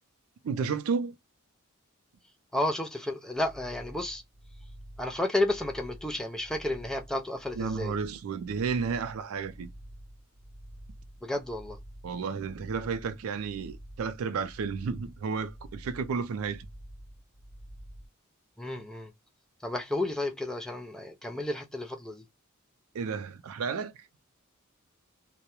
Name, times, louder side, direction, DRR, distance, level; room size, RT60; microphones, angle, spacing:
voice 1, 0.4-1.1 7.6-9.7 12.0-16.7 22.9-23.9, right 5 dB, 75° right, 0.4 m, -32 dB
voice 2, 2.5-4.2 5.0-8.0 11.2-11.8 18.6-19.1 19.6-22.3, left 1 dB, 5° left, 0.3 m, -32 dB
sound 1, 3.3-18.1, right 1 dB, 65° left, 1.1 m, -49 dB
2.3 x 2.0 x 2.8 m
head